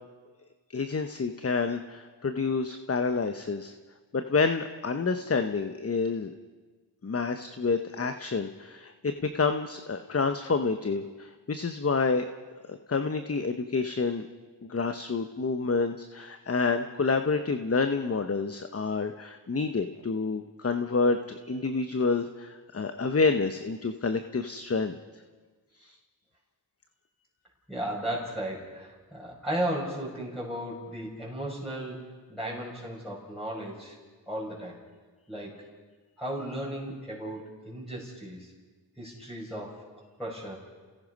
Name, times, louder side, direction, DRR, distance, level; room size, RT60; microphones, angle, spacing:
voice 1, 0.7-3.7 4.1-6.3 7.0-12.2 12.7-14.2 14.6-25.0 25.8-26.0, left 4 dB, 30° left, 8 dB, 1.0 m, -28 dB
voice 2, 27.7-34.0 34.3-34.8 35.3-35.6 36.2-38.5 39.0-39.9 40.2-40.6, right 1 dB, ahead, -8 dB, 5.8 m, -35 dB
29.0 x 18.0 x 5.4 m, 1.4 s
cardioid pair, 50°, 45 cm